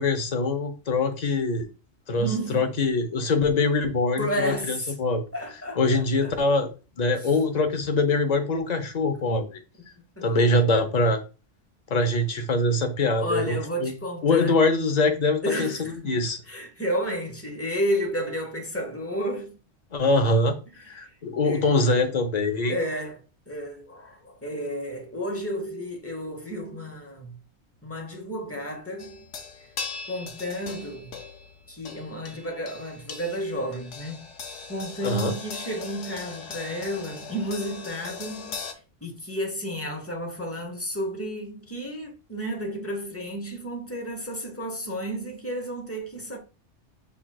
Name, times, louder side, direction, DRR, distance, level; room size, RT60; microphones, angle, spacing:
voice 1, 0.0-1.7 2.1-5.2 5.8-6.7 7.0-9.5 10.2-11.2 11.9-13.9 14.2-15.7 16.1-16.4 19.9-20.6 20.9-22.7 35.0-35.4, left 2 dB, 45° left, 0.7 m, -23 dB
voice 2, 2.1-2.7 4.2-4.9 5.3-6.3 7.2-7.3 10.2-10.3 13.2-14.6 15.4-19.6 21.4-21.8 22.7-27.4 27.8-29.2 30.1-31.1 31.7-34.3 34.7-38.6 39.0-46.4, equal, 15° left, 0.8 m, -32 dB
sound 1, 29.0-38.7, left 5 dB, 85° left, 1.0 m, -39 dB
6.1 x 3.4 x 2.3 m
omnidirectional pair, 1.2 m